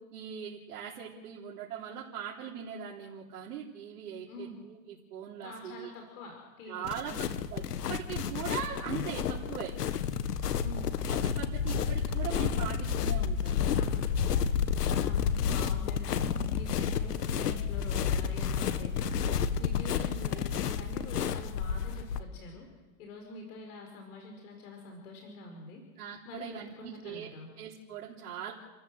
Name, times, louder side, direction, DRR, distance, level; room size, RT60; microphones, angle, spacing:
voice 1, 0.0-5.9 6.7-7.6 7.9-9.7 11.2-13.6 26.0-27.3 27.6-28.5, right 8 dB, 70° right, -3 dB, 3.7 m, -40 dB
voice 2, 4.3-4.6 5.4-7.4 10.6-10.9 11.7-11.9 13.7-14.4 14.8-16.2 16.5-22.7 23.0-25.8 26.3-27.5, left 3 dB, 70° left, 2 dB, 5.3 m, -46 dB
sound 1, 6.8-22.2, left 7 dB, 90° left, 1.6 m, -30 dB
30.0 x 14.0 x 7.9 m, 1.3 s
hypercardioid pair, 130°, 46 cm